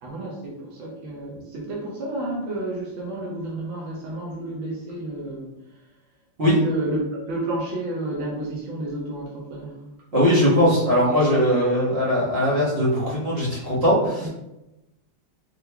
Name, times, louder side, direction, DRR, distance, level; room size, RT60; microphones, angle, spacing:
voice 1, 0.0-5.5 6.5-9.8 14.2-14.3, right 2 dB, 80° right, -4 dB, 1.7 m, -31 dB
voice 2, 10.1-14.3, equal, 35° right, -8 dB, 1.3 m, -20 dB
4.4 x 3.8 x 2.2 m, 0.94 s
omnidirectional pair, 2.1 m